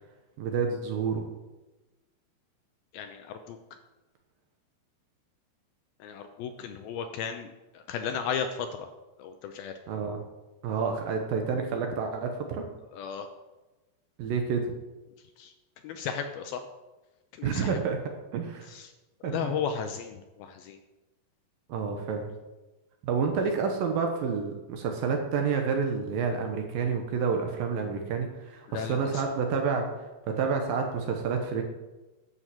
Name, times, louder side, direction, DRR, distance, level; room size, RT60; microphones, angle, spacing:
voice 1, 0.4-1.2 9.9-10.2 10.6-12.6 14.2-14.7 17.4-18.0 18.3-18.7 19.2-19.5 21.7-22.3 23.0-29.9 30.4-31.6, right 5 dB, 70° right, 4 dB, 2.6 m, -29 dB
voice 2, 2.9-3.6 6.0-8.9 9.2-9.7 12.9-13.3 15.4-15.5 15.8-16.6 17.4-17.8 18.7-18.9 19.2-20.8 28.7-29.2, left 7 dB, 75° left, 6 dB, 2.3 m, -35 dB
11.0 x 6.6 x 7.8 m, 1.1 s
omnidirectional pair, 4.9 m